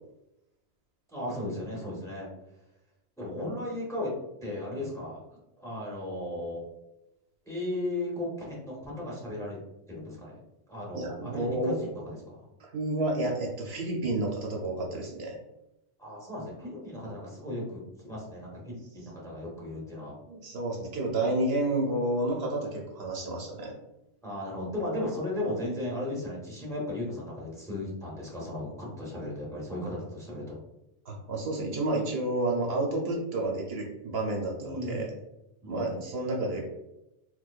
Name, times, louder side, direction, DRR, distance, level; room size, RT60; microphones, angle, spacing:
voice 1, 1.1-2.3 3.2-4.1 4.4-6.6 7.5-9.6 9.9-10.4 10.7-12.4 16.0-20.2 24.2-30.6 34.6-35.1 35.6-36.0, left 1 dB, 5° left, -4 dB, 0.8 m, -36 dB
voice 2, 10.9-11.8 12.6-15.4 20.3-23.7 31.1-35.1 35.7-36.7, right 2 dB, 65° right, -1 dB, 0.8 m, -30 dB
4.4 x 2.2 x 2.4 m, 0.92 s
omnidirectional pair, 1.1 m